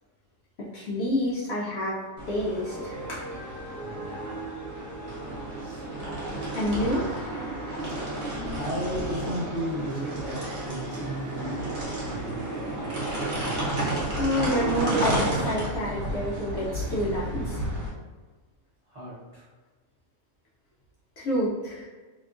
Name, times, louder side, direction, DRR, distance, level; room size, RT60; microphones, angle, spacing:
voice 1, 0.6-2.0 2.3-3.3 6.6-7.1 14.2-17.6 21.2-21.9, equal, 65° left, -6 dB, 0.7 m, -28 dB
sound 1, 2.2-17.9, right 1 dB, 55° right, 1.1 m, -32 dB
voice 2, 3.8-4.4 5.0-5.8 8.5-13.1 18.9-19.5, equal, 30° right, -11 dB, 1.0 m, -36 dB
2.8 x 2.3 x 2.4 m, 1.3 s
omnidirectional pair, 1.4 m